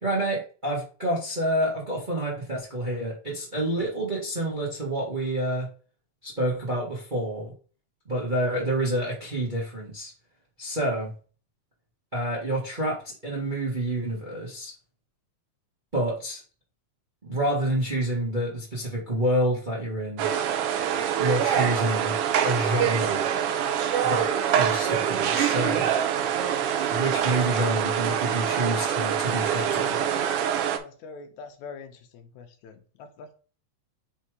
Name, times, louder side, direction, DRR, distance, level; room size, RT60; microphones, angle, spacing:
voice 1, 0.0-5.7 6.2-7.5 8.0-10.1 10.6-11.1 12.1-14.7 15.9-16.4 17.2-20.2 21.2-23.2 24.0-24.3 24.5-25.9 26.9-30.0, right 1 dB, 25° right, -3 dB, 1.0 m, -28 dB
sound 1, 20.2-30.8, right 9 dB, 80° right, 1.3 m, -25 dB
voice 2, 30.7-33.3, left 4 dB, 75° left, 7 dB, 2.1 m, -44 dB
5.5 x 3.7 x 4.8 m, 0.38 s
omnidirectional pair, 3.5 m